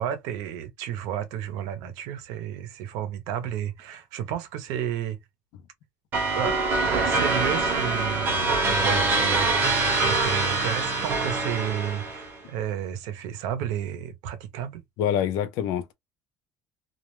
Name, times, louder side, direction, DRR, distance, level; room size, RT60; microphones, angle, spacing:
voice 1, 0.0-5.2 6.3-14.8, right 10 dB, 85° right, 0.6 m, -32 dB
sound 1, 6.1-12.4, right 3 dB, 35° right, 0.8 m, -24 dB
voice 2, 15.0-15.9, left 9 dB, 70° left, 0.5 m, -26 dB
2.3 x 2.0 x 3.0 m
cardioid pair, 160°, 6 cm